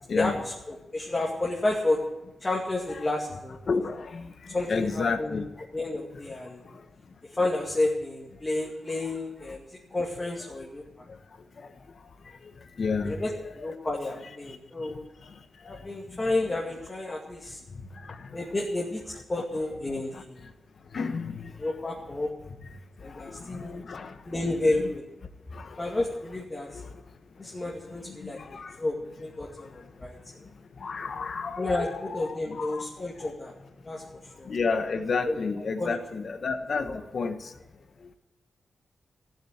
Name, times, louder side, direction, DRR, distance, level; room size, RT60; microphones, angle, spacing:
voice 1, 0.2-2.0 2.4-3.8 4.5-5.5 5.7-6.7 7.3-9.7 9.9-10.8 13.1-15.1 15.6-17.6 18.3-20.5 21.6-22.3 23.0-23.9 24.3-25.1 25.8-26.8 27.4-30.2 31.6-33.5 33.8-34.0 34.4-34.5 35.3-36.0 36.8-37.0, left 2 dB, 25° left, 2.3 m, -31 dB
voice 2, 4.7-5.4 12.8-13.1 20.9-21.3 23.9-24.0 28.5-28.7 30.8-32.2 32.6-32.7 34.5-37.3, left 4 dB, 55° left, 1.3 m, -29 dB
15.5 x 7.6 x 9.2 m
wide cardioid pair, 110°, 0 cm